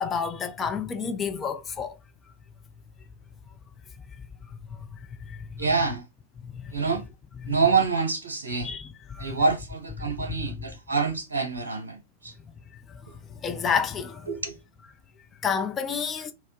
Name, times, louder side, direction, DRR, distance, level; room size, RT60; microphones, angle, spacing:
voice 1, 0.0-1.9 4.8-5.6 6.4-6.7 7.4-7.5 8.6-9.4 10.4-10.5 12.9-13.0 13.3-14.3 15.4-16.3, left 6 dB, 20° left, 0.5 m, -30 dB
voice 2, 5.6-6.1 6.7-7.0 7.5-8.7 9.2-12.3 14.3-14.6, right 4 dB, 70° right, 0.6 m, -26 dB
4.2 x 2.0 x 2.8 m
figure-of-eight pair, 90°, 0 cm